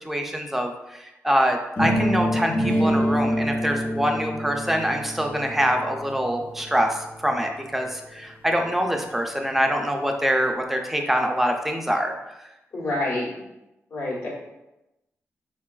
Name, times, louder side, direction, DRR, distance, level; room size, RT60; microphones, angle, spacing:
voice 1, 0.1-12.1, equal, 5° right, 2 dB, 0.4 m, -24 dB
sound 1, 1.8-7.7, equal, 35° left, 0.7 m, -26 dB
voice 2, 12.7-13.3 13.9-14.3, left 2 dB, 70° left, -5 dB, 1.1 m, -27 dB
3.8 x 2.2 x 2.3 m, 0.94 s
cardioid pair, 95°, 5 cm